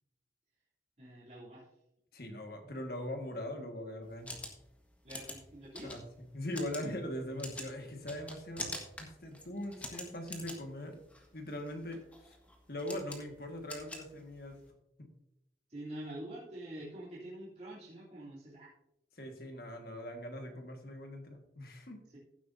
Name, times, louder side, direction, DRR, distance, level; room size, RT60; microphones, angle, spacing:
voice 1, 1.0-1.7 5.0-5.9 15.7-18.7, right 1 dB, 40° right, -9 dB, 3.2 m, -46 dB
voice 2, 2.1-4.3 5.8-6.0 6.3-11.0 11.3-12.4 12.7-14.6 15.0-15.1 19.2-22.0, left 1 dB, 55° left, 4 dB, 1.7 m, -41 dB
sound 1, 4.0-14.7, left 1 dB, 10° left, 1.5 m, -46 dB
15.5 x 8.0 x 2.7 m, 0.85 s
head